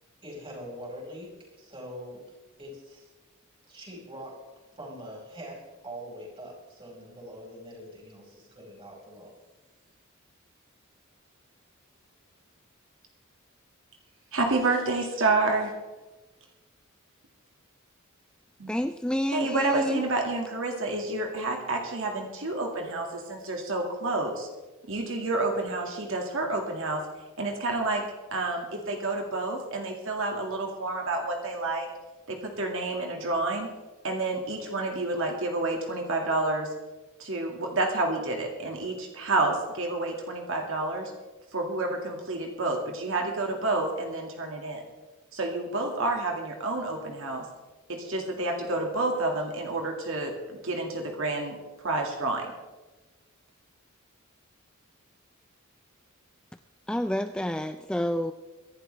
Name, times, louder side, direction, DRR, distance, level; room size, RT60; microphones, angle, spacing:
voice 1, 0.2-3.1 3.7-4.5 4.8-9.3 14.0-14.2, equal, 25° right, -2 dB, 5.1 m, -43 dB
voice 2, 14.3-15.7 18.6-18.8 19.3-24.5 24.9-27.0 27.4-28.0 28.3-31.9 32.3-33.7 34.0-36.7 37.2-41.1 41.5-44.8 45.3-47.4 47.9-52.5, right 2 dB, 65° right, 1 dB, 2.0 m, -29 dB
voice 3, 18.7-20.0 56.9-58.3, left 1 dB, 5° left, 9 dB, 0.3 m, -29 dB
24.0 x 11.5 x 3.4 m, 1.2 s
head